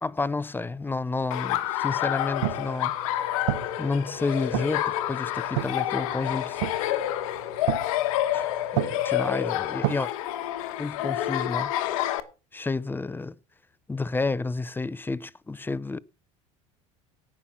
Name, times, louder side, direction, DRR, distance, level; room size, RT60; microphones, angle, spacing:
voice 1, 0.0-3.0 3.8-6.6 8.3-10.1 10.8-11.7 12.5-13.3 13.9-16.0, left 3 dB, 10° left, 0.6 m, -30 dB
Laughter, 1.3-12.2, left 13 dB, 80° left, 1.2 m, -28 dB
sound 1, 2.2-10.0, right 19 dB, 80° right, 0.7 m, -34 dB
17.5 x 5.8 x 5.9 m
supercardioid pair, 90°, 17 cm